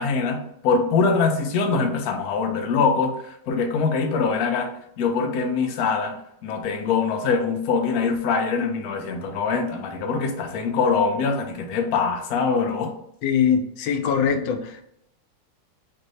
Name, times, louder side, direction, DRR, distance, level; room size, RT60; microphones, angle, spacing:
voice 1, 0.0-12.9, left 5 dB, 65° left, 4 dB, 1.0 m, -23 dB
voice 2, 13.2-14.8, left 7 dB, 85° left, 7 dB, 1.3 m, -22 dB
4.5 x 2.6 x 3.1 m, 0.74 s
omnidirectional pair, 2.0 m